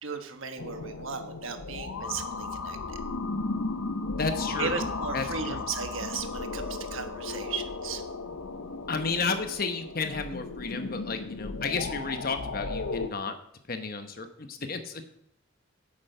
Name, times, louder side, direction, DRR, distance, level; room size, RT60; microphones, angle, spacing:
voice 1, 0.0-3.0 4.6-8.0, right 5 dB, 75° right, 7 dB, 1.3 m, -36 dB
sound 1, 0.6-13.1, left 3 dB, 85° left, 0.8 m, -35 dB
voice 2, 4.2-4.9 5.1-5.6 8.9-13.3 13.7-15.2, left 4 dB, 45° left, 7 dB, 1.0 m, -32 dB
8.7 x 8.6 x 5.5 m, 0.74 s
head